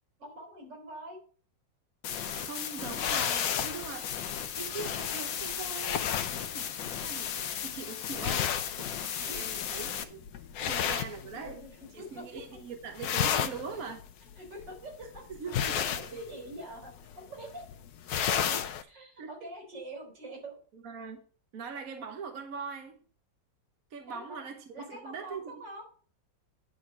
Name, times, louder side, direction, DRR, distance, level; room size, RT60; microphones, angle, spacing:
voice 1, 0.2-1.2 8.2-8.3 9.3-9.4 9.7-9.8 10.6-11.1 11.4-12.6 13.8-14.0 14.4-15.2 15.6-17.6 18.1-20.6 24.1-24.4 24.7-25.8, right 1 dB, 75° right, 4.6 m, -45 dB
sound 1, 2.0-10.0, left 8 dB, 85° left, 1.6 m, -36 dB
voice 2, 2.4-4.1 4.6-6.0 6.5-8.5 9.0-10.3 10.6-11.6 11.9-14.0 15.3-16.0 19.2-19.3 20.7-21.2 21.5-23.0 23.9-25.6, right 5 dB, 55° right, 1.3 m, -41 dB
sound 2, 2.9-11.9 12.2-12.6 12.8-18.8, left 9 dB, 65° left, 1.1 m, -33 dB
10.5 x 3.9 x 7.3 m
omnidirectional pair, 2.0 m